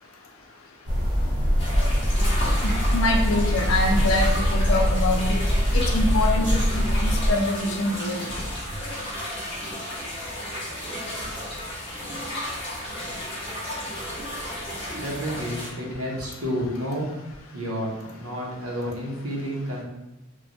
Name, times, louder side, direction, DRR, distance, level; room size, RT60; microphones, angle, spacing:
sound 1, 0.9-7.3, equal, 20° right, 0.7 m, -22 dB
sound 2, 1.6-15.7, left 1 dB, 25° left, 0.7 m, -33 dB
voice 1, 2.6-5.4 5.7-6.4 6.7-8.2, left 2 dB, 75° left, 0 dB, 0.5 m, -25 dB
voice 2, 14.9-17.1 17.5-19.8, equal, 85° right, -3 dB, 0.8 m, -30 dB
3.1 x 2.2 x 2.6 m, 0.95 s
head